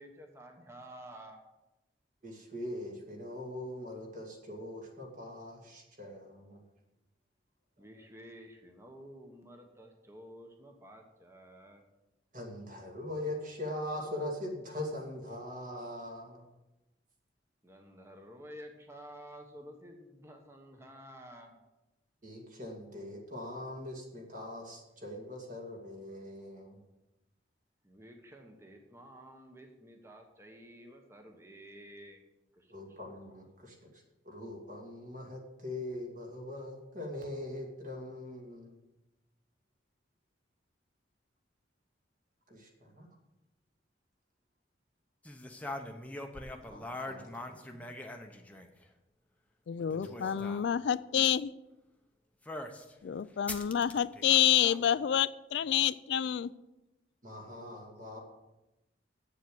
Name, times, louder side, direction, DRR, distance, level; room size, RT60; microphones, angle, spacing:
voice 1, 0.0-1.4 7.8-11.8 17.6-21.6 27.8-32.2 32.5-33.0, equal, 15° right, 3 dB, 1.1 m, -51 dB
voice 2, 2.2-6.6 12.3-16.4 22.2-26.8 32.7-33.7 34.2-38.7 42.5-42.7 43.0-43.1 46.7-47.8 49.9-50.6 57.2-58.2, left 1 dB, 45° right, 1 dB, 2.5 m, -42 dB
sound 1, 45.2-48.8 49.8-50.6 52.5-52.9 53.5-54.9, left 2 dB, 10° left, 0.8 m, -42 dB
voice 3, 49.7-51.5 53.0-56.5, left 10 dB, 70° left, 17 dB, 0.3 m, -28 dB
8.4 x 7.4 x 7.8 m, 0.98 s
head